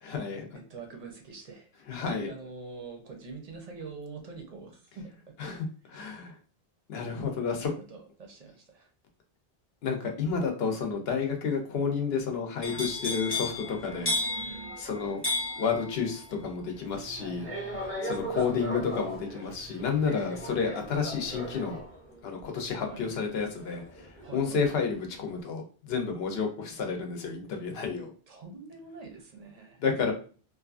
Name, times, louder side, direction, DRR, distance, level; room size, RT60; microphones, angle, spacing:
voice 1, 0.0-0.5 1.9-2.3 5.4-6.4 6.9-7.7 9.8-14.1 14.8-15.2 15.6-17.5 18.0-21.8 22.2-28.1 29.8-30.1, left 5 dB, 75° left, 3 dB, 0.9 m, -31 dB
voice 2, 0.5-1.7 2.1-5.1 5.8-6.0 7.6-8.9 13.9-14.8 17.2-18.7 22.8-23.1 24.2-24.8 28.3-29.8, right 4 dB, 45° right, 2 dB, 0.6 m, -45 dB
sound 1, 12.6-24.6 24.9-25.3, left 1 dB, 15° left, 0.6 m, -36 dB
Telephone, 16.8-21.8, left 1 dB, 50° left, 0.7 m, -51 dB
2.7 x 2.4 x 2.4 m, 0.38 s
omnidirectional pair, 1.1 m